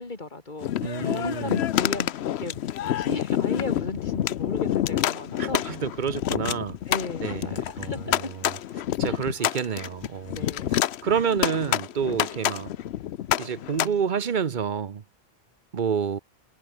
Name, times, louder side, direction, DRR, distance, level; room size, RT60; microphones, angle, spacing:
voice 1, 0.0-0.7 1.1-5.6 6.2-6.5 6.9-8.3 9.0-9.2 10.3-10.8 11.3-11.5, left 3 dB, 45° left, 2.5 m, -35 dB
Windy Desert Gun Battle, 0.6-13.9, left 11 dB, 80° left, 0.9 m, -28 dB
voice 2, 0.8-1.7 5.4-6.8 7.2-8.6 9.0-10.4 11.0-12.7 13.4-15.0 15.7-16.2, right 7 dB, 50° right, 1.0 m, -29 dB
omnidirectional pair, 1.1 m